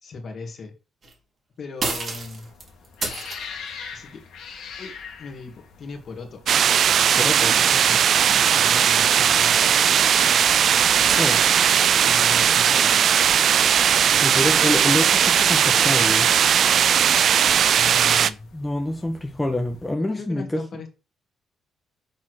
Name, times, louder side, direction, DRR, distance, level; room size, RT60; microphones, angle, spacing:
voice 1, 0.0-0.7 1.6-2.5 3.9-4.2 4.8-6.4 8.5-9.9 12.0-13.1 17.7-18.5 19.0-19.1 20.0-20.9, left 3 dB, 50° left, 5 dB, 2.4 m, -38 dB
sound 1, 1.0-1.1 1.8-3.6 9.5-9.6 10.7-13.0 13.2-17.9, right 3 dB, 45° right, 3.3 m, -36 dB
sound 2, 2.0-19.9, left 5 dB, 80° left, 2.4 m, -45 dB
sound 3, 6.5-18.3, right 8 dB, 60° right, 0.4 m, -18 dB
voice 2, 7.2-8.0 11.2-11.4 14.2-16.3 18.5-20.6, left 1 dB, 10° left, 3 dB, 1.3 m, -27 dB
7.5 x 4.2 x 6.4 m, 0.32 s
cardioid pair, 90°, 0 cm